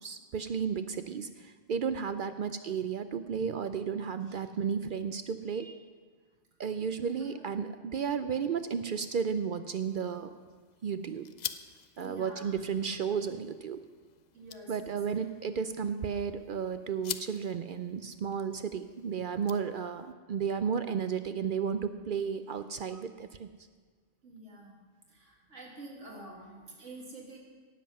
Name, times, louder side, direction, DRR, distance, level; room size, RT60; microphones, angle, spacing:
voice 1, 0.0-5.8 6.6-10.3 10.8-11.3 12.0-13.8 14.7-23.5, right 6 dB, 60° right, 10 dB, 0.6 m, -33 dB
voice 2, 7.0-7.5 12.0-12.5 14.3-15.0 24.2-24.8 25.1-27.4, right 2 dB, 90° right, -1 dB, 2.5 m, -48 dB
sound 1, 9.8-20.1, left 8 dB, 55° left, 0.5 m, -47 dB
18.0 x 7.6 x 5.5 m, 1.5 s
omnidirectional pair, 1.2 m